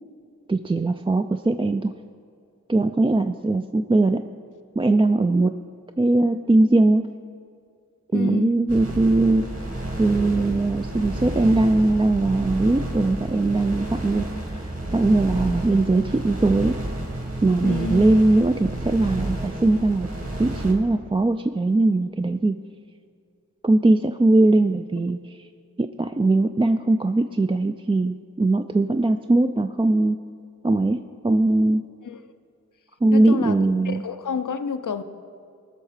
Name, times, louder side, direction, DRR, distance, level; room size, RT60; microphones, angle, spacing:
voice 1, 0.5-1.9 2.7-4.2 4.8-5.5 6.0-7.1 8.1-9.5 10.0-14.3 14.5-16.8 17.4-20.1 20.4-22.6 23.6-25.2 25.8-30.2 30.6-31.8 33.0-34.0, right 2 dB, 20° right, 7 dB, 0.3 m, -20 dB
voice 2, 8.1-8.6 17.6-18.1 32.0-32.2 33.1-33.6 33.8-35.0, left 5 dB, 80° left, 10 dB, 0.6 m, -29 dB
sound 1, 8.7-20.7, right 1 dB, 50° right, 2.1 m, -30 dB
18.5 x 6.4 x 4.9 m, 2.3 s
wide cardioid pair, 45°, 31 cm